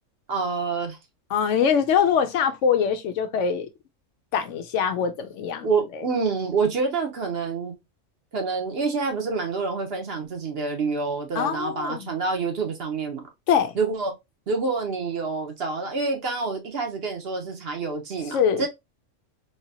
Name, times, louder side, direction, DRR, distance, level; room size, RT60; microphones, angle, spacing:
voice 1, 0.3-1.0 5.6-7.8 8.3-13.3 13.7-14.1 14.5-18.7, right 4 dB, 55° right, 1.0 m, -27 dB
voice 2, 1.3-3.7 4.3-5.7 5.9-6.1 11.3-12.1 13.5-13.8 18.3-18.6, left 7 dB, 75° left, 0.9 m, -23 dB
3.3 x 2.8 x 2.7 m
omnidirectional pair, 1.3 m